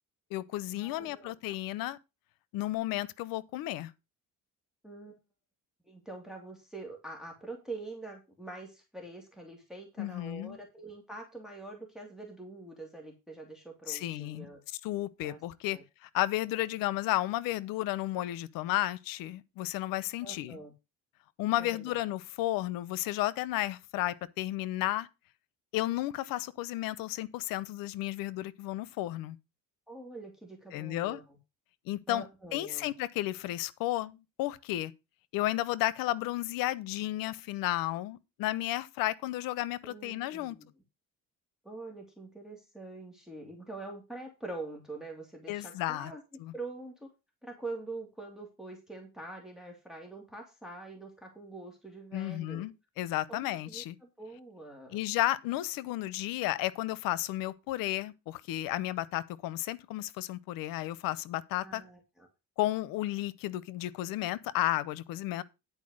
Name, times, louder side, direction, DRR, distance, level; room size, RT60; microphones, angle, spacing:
voice 1, 0.3-2.0 2.5-3.9 10.0-10.6 13.9-14.5 14.8-20.6 21.4-25.1 25.7-29.4 30.7-31.2 31.9-32.3 32.5-34.9 35.3-40.6 45.5-46.1 46.4-46.5 52.1-54.0 54.9-61.8 62.6-65.4, left 16 dB, 90° left, 0.7 m, -33 dB
voice 2, 0.8-1.3 4.8-5.1 5.9-14.6 15.2-15.4 15.7-15.8 20.2-20.7 21.6-22.0 29.9-31.4 32.1-32.9 39.8-40.7 41.6-46.2 46.5-47.1 47.4-52.6 53.3-55.0 61.6-62.3, right 2 dB, ahead, 2.4 m, -45 dB
10.5 x 4.6 x 6.3 m
cardioid pair, 145°, 33 cm